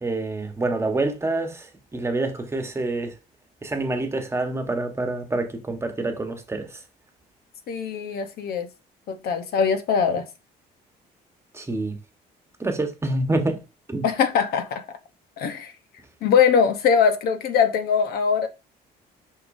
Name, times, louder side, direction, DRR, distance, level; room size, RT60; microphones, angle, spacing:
voice 1, 0.0-3.1 3.6-6.8 11.5-12.0 12.6-13.6 13.9-14.0, right 2 dB, 15° right, 1.2 m, -27 dB
voice 2, 7.7-8.7 9.1-10.3 14.0-14.8 15.4-15.7 16.2-18.5, left 6 dB, 65° left, 1.0 m, -21 dB
6.6 x 5.7 x 2.6 m
cardioid pair, 110°, 17 cm